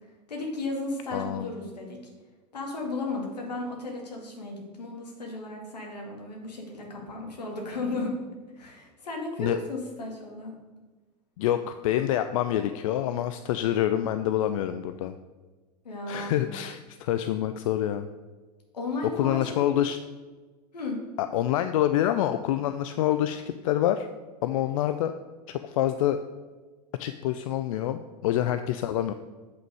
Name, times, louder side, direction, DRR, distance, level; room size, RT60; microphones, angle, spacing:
voice 1, 0.3-2.0 2.5-8.1 8.5-10.5 15.8-16.5 18.7-19.7 20.7-21.0, left 2 dB, 75° left, 0 dB, 2.0 m, -34 dB
voice 2, 1.1-1.5 9.4-9.6 11.4-15.1 16.1-18.1 19.1-20.0 21.2-24.1 24.4-25.1 25.5-26.2 27.0-29.1, left 12 dB, 55° left, 10 dB, 0.4 m, -26 dB
7.9 x 5.7 x 4.8 m, 1.3 s
figure-of-eight pair, 85°, 21 cm